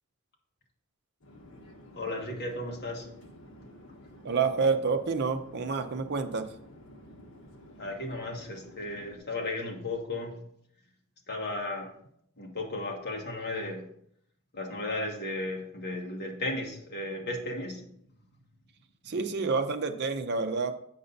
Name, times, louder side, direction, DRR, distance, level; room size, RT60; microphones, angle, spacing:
Conversation / Chatter / Fixed-wing aircraft airplane, 1.2-9.2, left 1 dB, 70° left, 1.3 m, -51 dB
voice 1, 1.9-3.1 7.8-10.4 11.3-11.9 12.4-13.9 14.5-17.9, left 2 dB, 50° left, 0 dB, 1.5 m, -35 dB
voice 2, 4.2-6.5 19.1-20.7, right 4 dB, 50° right, 6 dB, 0.6 m, -28 dB
7.8 x 5.5 x 3.9 m, 0.69 s
head